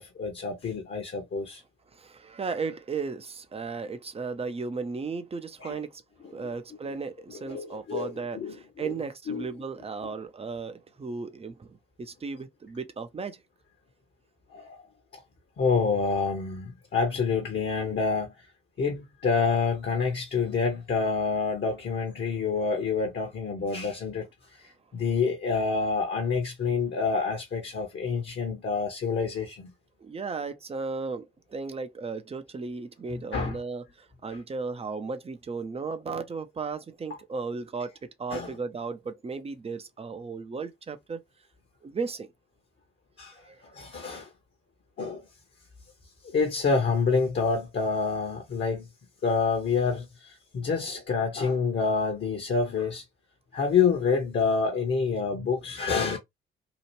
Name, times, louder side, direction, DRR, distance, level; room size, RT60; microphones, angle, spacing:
voice 1, 0.0-1.6 5.6-5.8 6.2-6.3 7.4-8.9 9.3-9.5 14.5-14.9 15.1-15.2 15.6-18.3 18.8-24.3 24.6-29.7 33.3-33.6 38.3-38.5 43.2-44.3 45.0-45.2 46.3-48.9 49.2-53.0 53.5-56.2, left 5 dB, 40° left, 1.1 m, -27 dB
voice 2, 1.9-6.0 6.3-13.4 30.0-37.9 38.2-41.2 41.8-42.3 43.4-43.6, right 4 dB, 20° right, 0.6 m, -35 dB
2.9 x 2.4 x 3.0 m
figure-of-eight pair, 45°, 29 cm